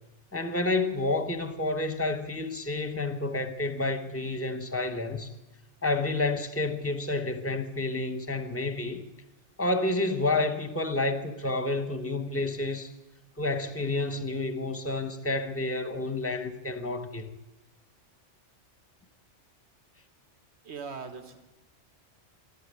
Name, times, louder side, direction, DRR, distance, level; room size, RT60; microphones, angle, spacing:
voice 1, 0.3-5.3 5.8-9.0 9.6-12.9 13.4-17.3, left 2 dB, 10° left, 8 dB, 0.9 m, -29 dB
voice 2, 20.6-21.4, right 5 dB, 65° right, 7 dB, 1.6 m, -39 dB
12.5 x 12.0 x 9.6 m, 1.0 s
omnidirectional pair, 1.2 m